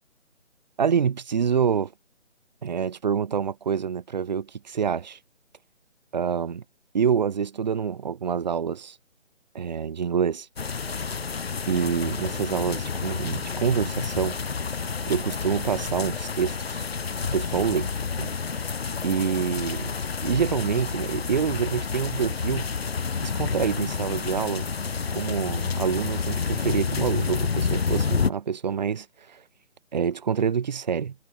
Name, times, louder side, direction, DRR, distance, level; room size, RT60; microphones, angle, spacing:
voice 1, 0.8-1.9 2.6-5.2 6.1-6.6 6.9-9.0 9.5-10.5 11.7-14.4 15.1-16.9 17.3-17.9 18.2-18.3 19.0-19.9 20.2-22.7 23.2-24.7 25.1-29.4 29.9-31.1, right 7 dB, 35° right, 2.4 m, -26 dB
sound 1, 10.6-28.3, left 5 dB, 55° left, 1.2 m, -29 dB
figure-of-eight pair, 155°, 37 cm